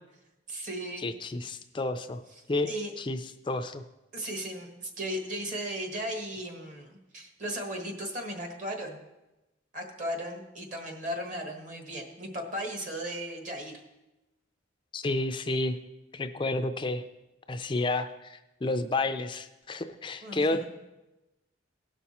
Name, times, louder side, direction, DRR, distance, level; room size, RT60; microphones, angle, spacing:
voice 1, 0.5-1.1 2.3-2.4 2.7-2.9 4.1-9.0 9.7-13.8 20.2-20.6, equal, 40° right, 3 dB, 1.5 m, -36 dB
voice 2, 1.0-2.2 2.5-2.7 3.0-3.2 3.5-3.8 14.9-15.8 16.1-17.0 17.5-20.6, left 2 dB, 25° left, 9 dB, 0.4 m, -30 dB
17.5 x 5.8 x 4.2 m, 1.0 s
head